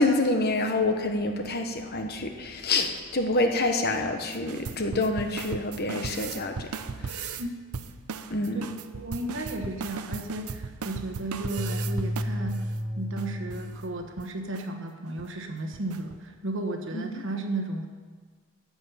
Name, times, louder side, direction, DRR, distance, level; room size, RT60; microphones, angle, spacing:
voice 1, 0.0-6.7 7.0-7.4 8.3-8.7 16.9-17.2, left 2 dB, 45° left, 5 dB, 1.0 m, -27 dB
sound 1, 4.3-7.4 7.7-12.7 13.2-13.3 13.5-13.7 14.0-14.3 14.5-14.6 15.1-15.3 15.7-16.2, right 5 dB, 85° right, 0.7 m, -37 dB
voice 2, 8.5-12.6 13.0-17.9, right 2 dB, 55° right, 5 dB, 1.3 m, -34 dB
sound 2, 11.6-14.1, equal, ahead, 0.4 m, -32 dB
13.5 x 8.9 x 5.6 m, 1.5 s
head